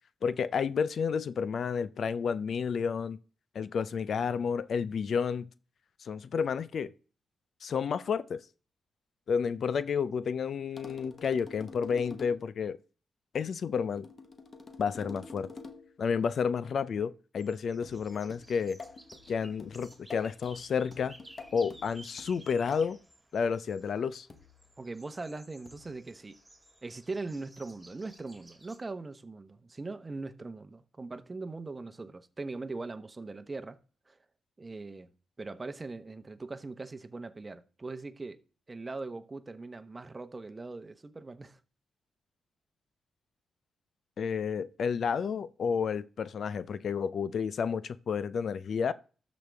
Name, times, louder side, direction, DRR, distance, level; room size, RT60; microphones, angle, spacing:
voice 1, 0.2-3.2 3.5-5.5 6.0-6.9 7.6-8.4 9.3-12.8 13.3-14.1 14.8-15.5 16.0-18.8 19.3-21.2 21.5-23.0 23.3-24.3 44.2-48.9, left 6 dB, 60° left, 0.4 m, -31 dB
sound 1, 10.8-12.6 14.0-16.0 17.8-23.0 24.3-24.7 25.7-26.0, left 3 dB, 45° left, 1.1 m, -48 dB
sound 2, 17.4-28.8, right 1 dB, 5° right, 2.5 m, -56 dB
voice 2, 24.8-26.4 26.8-33.8 34.1-34.2 34.6-35.1 35.4-38.4 38.7-41.6, right 3 dB, 25° right, 0.9 m, -41 dB
13.0 x 5.2 x 3.4 m
cardioid pair, 80°, 0 cm